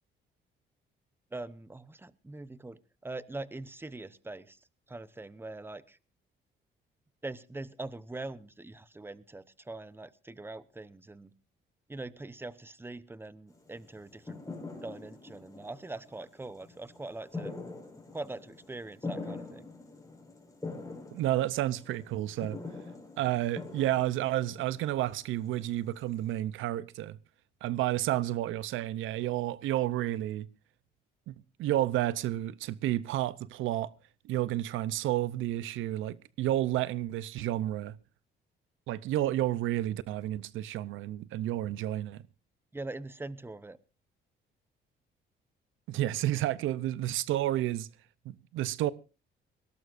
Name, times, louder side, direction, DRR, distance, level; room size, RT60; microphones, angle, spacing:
voice 1, 1.3-4.6 4.9-6.0 7.2-11.3 11.9-14.4 14.8-17.5 18.1-19.7 42.7-43.8, right 2 dB, 10° right, 0.9 m, -42 dB
sound 1, 13.5-26.4, left 3 dB, 15° left, 5.2 m, -44 dB
voice 2, 21.1-22.6 23.2-27.2 27.6-30.5 31.3-33.9 34.2-38.0 38.9-42.2 45.9-47.9 48.3-48.9, right 14 dB, 90° right, 0.7 m, -31 dB
21.5 x 17.5 x 2.6 m
cardioid pair, 90°, 20 cm